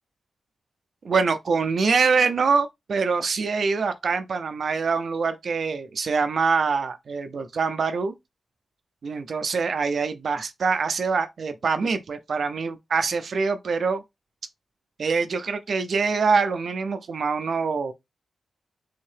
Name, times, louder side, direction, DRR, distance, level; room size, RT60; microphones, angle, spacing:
voice 1, 1.0-8.2 9.0-14.0 15.0-17.9, right 5 dB, 60° right, 0.4 m, -24 dB
3.5 x 2.7 x 3.2 m
wide cardioid pair, 130°, 0 cm